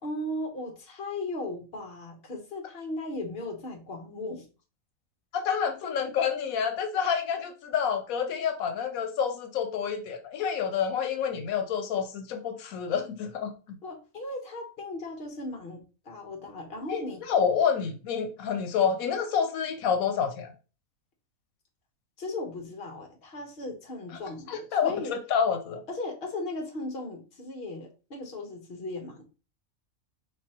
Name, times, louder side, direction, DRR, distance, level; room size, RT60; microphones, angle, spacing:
voice 1, 0.0-4.5 5.8-5.9 13.8-17.2 18.8-19.0 22.2-25.2 25.9-29.2, left 2 dB, 45° left, 1.3 m, -37 dB
voice 2, 5.3-13.8 16.9-17.0 17.3-20.5 24.5-25.8, left 7 dB, 85° left, 1.1 m, -28 dB
5.2 x 3.2 x 2.9 m
omnidirectional pair, 1.4 m